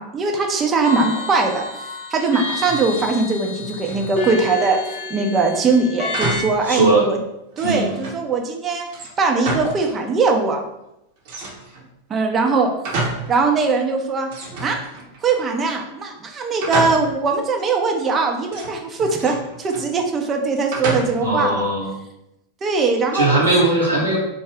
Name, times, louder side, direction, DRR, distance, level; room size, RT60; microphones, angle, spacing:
voice 1, 0.0-1.7 2.1-7.2 7.6-8.9 9.2-10.6 12.1-12.7 13.3-14.3 14.6-14.8 15.2-21.7 22.6-23.3, right 4 dB, 25° right, 3 dB, 0.5 m, -21 dB
sound 1, 0.8-6.4, left 2 dB, 50° left, 0.8 m, -30 dB
sound 2, 2.6-3.1 3.4-4.5 6.1-6.6 7.0-7.1 7.5-8.2 8.9-10.0 10.2-10.3 11.2-11.9 12.4-13.4 13.7-13.8 14.3-15.3 16.6-17.3 18.5-19.9 20.7-21.4, right 2 dB, 50° right, 0.8 m, -29 dB
voice 2, 6.7-7.1 7.6-7.9 21.2-21.9 23.1-24.2, right 2 dB, 80° right, -5 dB, 1.1 m, -18 dB
3.5 x 2.0 x 3.4 m, 0.86 s
figure-of-eight pair, 90°, 0 cm